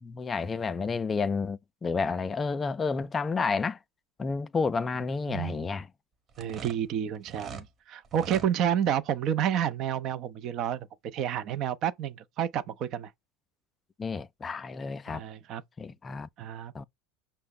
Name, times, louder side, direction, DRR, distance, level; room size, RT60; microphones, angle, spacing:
voice 1, 0.0-3.8 4.2-5.9 14.0-15.2 15.8-16.3 16.7-16.8, left 4 dB, 25° left, 0.3 m, -30 dB
sound 1, 6.3-7.7 8.0-8.5, right 6 dB, 35° right, 1.0 m, -43 dB
voice 2, 6.4-13.1 15.1-15.6 16.4-16.7, right 9 dB, 50° right, 0.5 m, -30 dB
5.7 x 2.1 x 3.7 m
hypercardioid pair, 85°, 0 cm